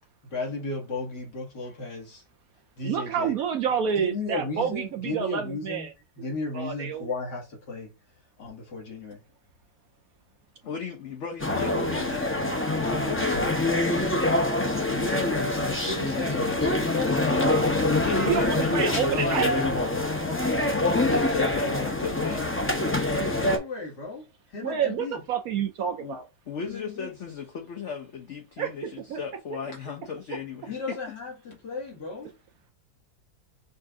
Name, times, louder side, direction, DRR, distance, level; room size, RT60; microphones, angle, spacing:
voice 1, 0.2-2.2 2.8-3.4 3.9-5.9 6.2-7.9 8.4-9.2 12.8-13.6 14.9-17.2 20.1-20.8 23.1-24.2 24.5-25.2 26.6-27.1 30.7-32.4, left 3 dB, 70° left, 2.5 m, -35 dB
voice 2, 2.8-5.9 6.5-7.1 18.3-19.5 24.6-26.3 28.6-29.2, right 7 dB, 65° right, 0.9 m, -29 dB
voice 3, 10.6-12.3 14.8-15.6 18.0-19.9 21.0-23.2 26.0-26.2 26.5-30.8, left 6 dB, 55° left, 0.9 m, -36 dB
sound 1, 11.4-23.6, left 2 dB, 15° left, 0.4 m, -25 dB
5.4 x 2.6 x 3.7 m
omnidirectional pair, 1.9 m